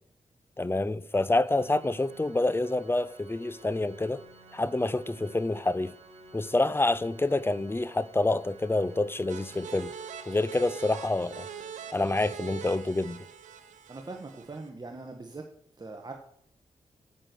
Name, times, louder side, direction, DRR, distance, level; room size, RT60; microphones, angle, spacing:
voice 1, 0.6-4.2 4.5-6.0 6.3-9.9 10.3-11.5 11.9-13.2, left 2 dB, 20° left, 0.6 m, -27 dB
Organ, 1.4-12.2, right 2 dB, 50° right, 2.7 m, -53 dB
sound 1, 9.3-14.7, right 8 dB, 90° right, 0.9 m, -43 dB
voice 2, 13.9-15.4 15.8-16.1, right 3 dB, 35° right, 1.4 m, -41 dB
8.0 x 7.5 x 6.7 m
cardioid pair, 55°, 12 cm